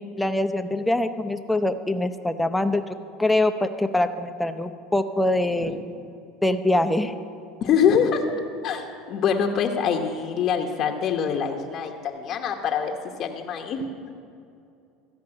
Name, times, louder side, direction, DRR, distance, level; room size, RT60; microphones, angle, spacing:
voice 1, 0.0-5.7 6.4-7.1, left 1 dB, 5° left, 8 dB, 0.6 m, -24 dB
voice 2, 7.6-8.2 8.6-13.8, left 7 dB, 50° left, 2 dB, 0.9 m, -24 dB
14.0 x 5.3 x 8.7 m, 2.5 s
supercardioid pair, 110°, 0 cm